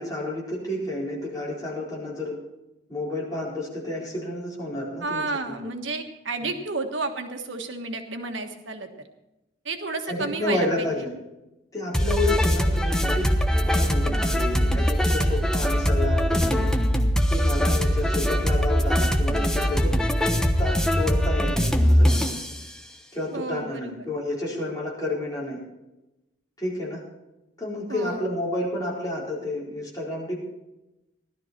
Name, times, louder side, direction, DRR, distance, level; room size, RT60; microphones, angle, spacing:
voice 1, 0.0-2.4 2.9-5.5 6.4-6.5 10.1-11.1 11.7-16.7 17.3-19.9 20.2-22.3 23.1-25.6 26.6-27.0 27.6-30.4, left 1 dB, 20° left, -5 dB, 4.5 m, -30 dB
voice 2, 5.0-8.9 9.6-10.9 23.3-23.9 27.9-28.3, right 3 dB, 90° right, 6 dB, 1.5 m, -31 dB
sound 1, 11.9-22.5, equal, 5° left, 0.9 m, -22 dB
16.5 x 12.0 x 4.5 m, 0.96 s
head